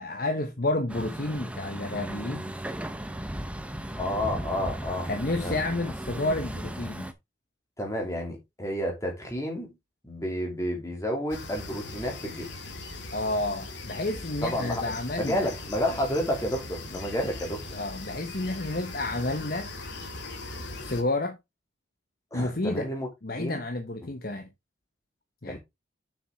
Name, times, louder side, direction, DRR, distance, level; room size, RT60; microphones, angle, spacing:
voice 1, 0.0-2.5 5.0-7.1 13.1-15.5 17.7-19.7 20.8-21.4 22.3-22.9 23.2-24.5 25.4-25.6, left 2 dB, 50° left, 1.0 m, -30 dB
Truck, 0.9-7.1, right 1 dB, 5° right, 0.7 m, -36 dB
voice 2, 4.0-5.6 7.8-9.7 10.0-12.5 14.4-17.7 22.3-23.1 23.4-23.6 25.5-25.6, equal, 15° left, 2.8 m, -31 dB
sound 1, 11.3-21.0, left 2 dB, 65° left, 2.1 m, -40 dB
7.0 x 6.5 x 3.6 m
head